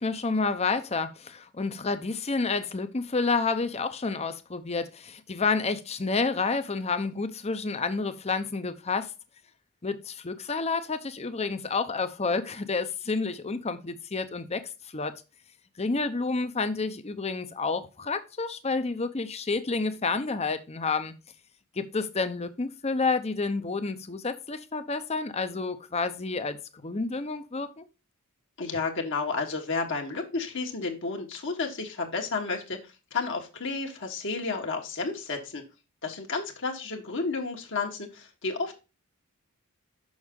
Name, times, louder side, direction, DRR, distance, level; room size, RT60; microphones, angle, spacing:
voice 1, 0.0-9.1 9.8-15.1 15.8-21.1 21.8-27.8, left 4 dB, 30° left, 0.7 m, -29 dB
voice 2, 28.6-32.8 33.1-35.6 36.0-38.7, left 4 dB, 55° left, 1.3 m, -31 dB
6.3 x 6.2 x 3.6 m
head